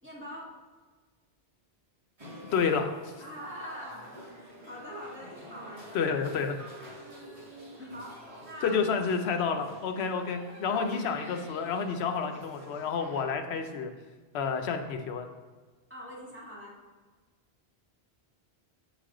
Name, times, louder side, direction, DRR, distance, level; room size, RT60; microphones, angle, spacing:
voice 1, 0.0-0.6 3.2-6.0 7.0-8.8 10.7-10.8 15.9-16.8, equal, 10° right, -7 dB, 1.9 m, -44 dB
sound 1, 2.2-13.2, right 1 dB, 30° right, 1.5 m, -48 dB
voice 2, 2.5-3.1 5.9-6.6 7.8-8.0 8.6-13.9 14.3-15.3, left 5 dB, 90° left, 5 dB, 0.9 m, -30 dB
8.2 x 3.3 x 3.7 m, 1.3 s
omnidirectional pair, 1.1 m